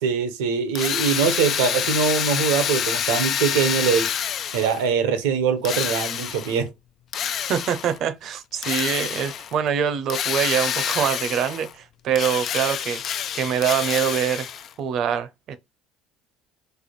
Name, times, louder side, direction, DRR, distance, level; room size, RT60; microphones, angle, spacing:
voice 1, 0.0-4.1 4.5-6.7, right 6 dB, 85° right, 0.8 m, -22 dB
Drill, 0.8-4.9 5.6-6.6 7.1-8.0 8.6-9.5 10.1-11.7 12.1-14.7, left 9 dB, 55° left, 0.3 m, -27 dB
voice 2, 7.5-13.0 13.3-14.5 14.8-15.6, right 8 dB, 60° right, 0.7 m, -24 dB
3.4 x 2.2 x 4.2 m
supercardioid pair, 80°, 0 cm